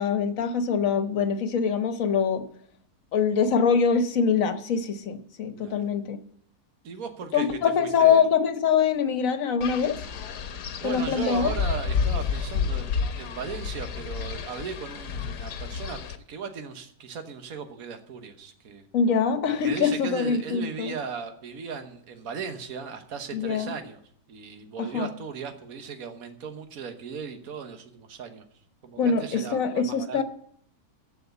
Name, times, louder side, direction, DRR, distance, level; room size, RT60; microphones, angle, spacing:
voice 1, 0.0-2.4 3.1-6.2 7.3-10.0 10.8-11.5 18.9-20.9 23.3-23.7 24.8-25.1 29.0-30.2, left 6 dB, 60° left, 9 dB, 1.3 m, -24 dB
voice 2, 5.6-5.9 6.8-8.2 10.8-16.0 16.3-18.9 19.6-24.0 24.3-28.5 28.8-30.2, right 6 dB, 65° right, 7 dB, 1.6 m, -37 dB
Wind, 9.6-16.2, left 6 dB, 80° left, 1.4 m, -30 dB
14.5 x 4.9 x 8.0 m, 0.63 s
omnidirectional pair, 1.7 m